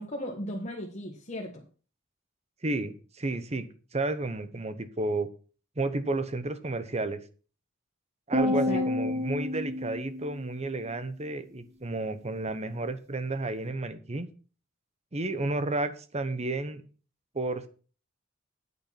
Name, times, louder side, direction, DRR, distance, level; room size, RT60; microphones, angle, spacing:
voice 1, 0.0-1.6 8.4-9.2, left 1 dB, 35° left, -1 dB, 1.6 m, -36 dB
voice 2, 2.6-5.3 5.8-7.2 8.3-14.3 15.1-16.8 17.3-17.7, right 2 dB, 35° right, 12 dB, 1.0 m, -32 dB
sound 1, 8.3-10.8, left 1 dB, 20° right, 1.4 m, -29 dB
8.6 x 6.7 x 5.8 m, 0.38 s
head